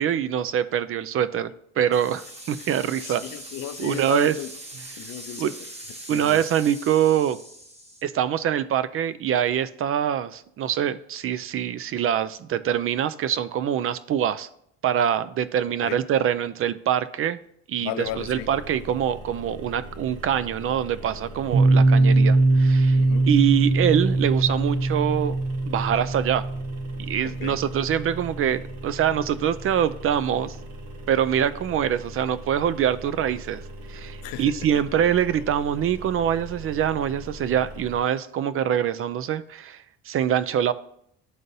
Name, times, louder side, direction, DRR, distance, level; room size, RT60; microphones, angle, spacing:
voice 1, 0.0-3.2 3.8-4.3 5.4-5.5 6.1-7.4 8.0-14.5 14.8-17.4 17.7-17.9 18.2-23.0 23.3-25.4 25.7-26.5 27.1-30.6 31.1-33.6 33.9-40.7, right 9 dB, 45° right, 0.4 m, -24 dB
sound 1, 1.9-8.0, right 1 dB, 20° right, 1.1 m, -41 dB
voice 2, 3.0-4.5 5.0-5.6 6.1-6.4 15.7-16.0 17.8-18.5 23.0-23.3 27.2-27.6 34.2-34.8 35.3-35.4, left 12 dB, 75° left, 0.5 m, -35 dB
sound 2, 18.0-38.0, equal, 70° right, 1.3 m, -41 dB
Piano, 21.5-29.0, right 2 dB, 90° right, 0.9 m, -22 dB
11.0 x 3.8 x 2.7 m
supercardioid pair, 80°, 32 cm